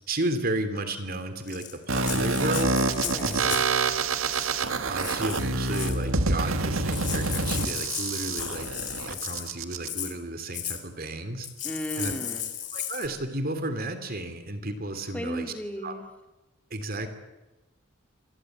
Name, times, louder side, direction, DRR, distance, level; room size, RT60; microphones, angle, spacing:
voice 1, 0.1-2.8 3.2-3.9 4.8-8.7 9.1-11.5 12.0-12.1 12.7-15.4 15.8-15.9 16.7-17.1, right 2 dB, 45° right, 8 dB, 2.9 m, -33 dB
Rattle (instrument), 1.5-3.8 4.3-4.6 5.0-6.0 6.6-6.7 6.9-9.5 9.8-10.1 10.5-10.8 11.4-13.1, left 10 dB, 35° left, 3.5 m, -35 dB
sound 1, 1.9-9.9, right 3 dB, 80° right, 2.1 m, -27 dB
voice 2, 3.0-3.6 11.6-12.4 15.1-16.0, equal, 5° left, 3 dB, 3.3 m, -35 dB
27.5 x 22.0 x 9.2 m, 1.0 s
head